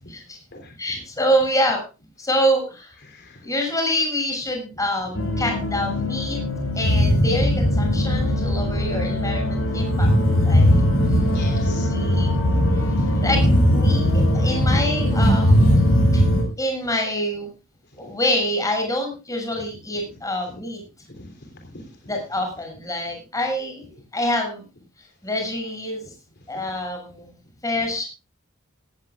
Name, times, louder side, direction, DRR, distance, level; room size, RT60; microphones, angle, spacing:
voice 1, 0.1-0.4 0.8-1.8 2.2-2.9 3.4-6.4 6.7-10.1 10.4-10.7 11.6-12.4 12.8-12.9 13.2-13.4 13.7-15.8 16.1-16.2 16.6-17.5 17.9-20.8 22.1-23.8 24.1-24.6 25.2-26.0 26.5-27.3 27.6-28.0, equal, 15° left, 2 dB, 6.8 m, -26 dB
voice 2, 3.0-3.5 6.7-6.9 10.4-10.5 11.0-12.2 13.2-13.3 21.1-21.9, left 2 dB, 55° left, 4 dB, 3.3 m, -42 dB
sound 1, 5.1-16.4, left 1 dB, 80° left, 6.7 m, -19 dB
18.5 x 15.0 x 2.4 m, 0.32 s
head